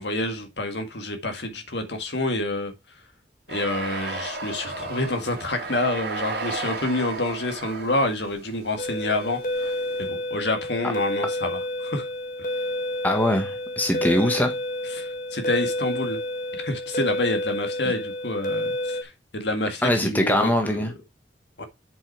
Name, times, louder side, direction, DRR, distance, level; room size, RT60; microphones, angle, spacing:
voice 1, 0.0-2.7 3.5-9.7 10.1-12.1 14.9-16.2 16.5-20.9 21.6-21.7, left 2 dB, 70° left, 1.9 m, -28 dB
sound 1, 3.5-10.1, right 3 dB, 60° right, 2.5 m, -34 dB
sound 2, 8.8-19.0, left 1 dB, 45° left, 1.4 m, -29 dB
voice 2, 13.0-14.5 19.8-20.9, left 1 dB, 10° left, 1.4 m, -22 dB
7.7 x 5.5 x 4.6 m
head